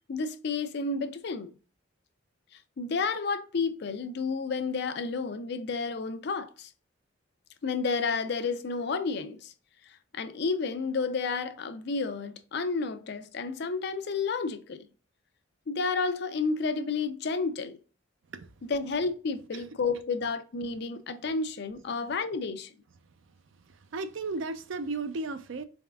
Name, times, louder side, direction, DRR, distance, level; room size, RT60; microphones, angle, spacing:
voice 1, 0.1-1.6 2.8-6.7 7.6-9.5 10.1-14.8 15.7-17.8 18.6-22.7, left 4 dB, 55° left, 0.4 m, -31 dB
voice 2, 23.9-25.7, right 3 dB, 65° right, 0.5 m, -34 dB
4.0 x 3.5 x 2.3 m
head